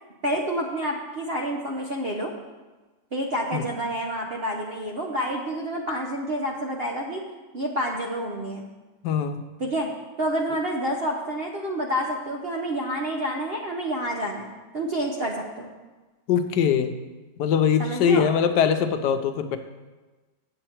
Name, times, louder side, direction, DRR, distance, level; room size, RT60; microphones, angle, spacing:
voice 1, 0.2-2.3 3.1-7.2 7.5-8.6 9.6-9.9 10.2-15.7 17.8-18.3, equal, 50° right, 0 dB, 0.7 m, -28 dB
voice 2, 9.0-9.4 16.3-16.9 17.4-19.6, left 7 dB, 75° left, 8 dB, 1.2 m, -22 dB
7.9 x 7.7 x 4.4 m, 1.2 s
omnidirectional pair, 1.9 m